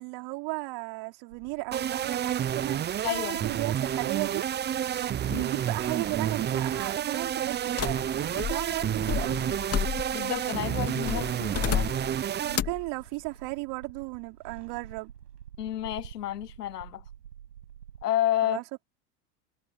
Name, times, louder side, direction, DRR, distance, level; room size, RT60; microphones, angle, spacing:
voice 1, 0.0-4.5 5.3-9.6 12.4-15.1 18.4-18.6, right 25 dB, 55° right, 4.6 m, -35 dB
sound 1, 1.3-18.0, right 10 dB, 85° right, 5.7 m, -51 dB
sound 2, 1.7-12.6, right 10 dB, 20° right, 0.7 m, -30 dB
voice 2, 3.0-3.4 5.3-5.5 10.1-11.9 15.6-17.0 18.0-18.6, left 12 dB, 90° left, 1.0 m, -30 dB
sound 3, 7.8-10.4 11.0-12.2 12.5-12.9, left 9 dB, 30° left, 2.7 m, -31 dB
hypercardioid pair, 90°, 46 cm